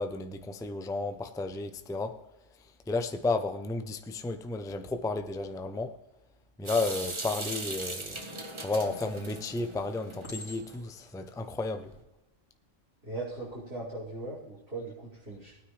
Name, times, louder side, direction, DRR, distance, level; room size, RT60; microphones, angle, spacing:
voice 1, 0.0-2.2 2.9-6.0 6.6-8.2 8.6-11.9, left 3 dB, 5° left, 0.3 m, -32 dB
Water tap faucet / Sink (filling or washing) / Drip, 6.7-10.8, right 2 dB, 25° right, 1.0 m, -39 dB
Chink clink, 10.2-11.0 11.8-12.0, left 2 dB, 85° left, 3.3 m, -46 dB
voice 2, 13.0-15.5, right 2 dB, 60° right, 5.0 m, -39 dB
19.5 x 9.3 x 3.3 m
omnidirectional pair, 1.3 m